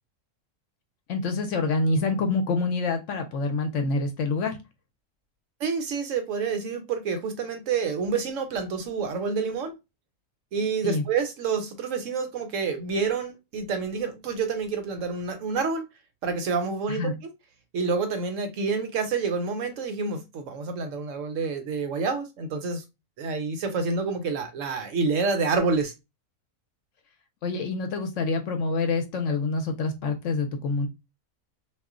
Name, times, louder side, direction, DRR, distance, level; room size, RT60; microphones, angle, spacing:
voice 1, 1.1-4.6 10.8-11.0 16.9-17.1 27.4-30.9, left 3 dB, 65° left, 0.8 m, -26 dB
voice 2, 5.6-9.7 10.5-15.8 16.2-17.3 17.7-22.8 23.2-25.9, right 5 dB, 70° right, 0.9 m, -28 dB
2.4 x 2.0 x 3.6 m
omnidirectional pair, 1.5 m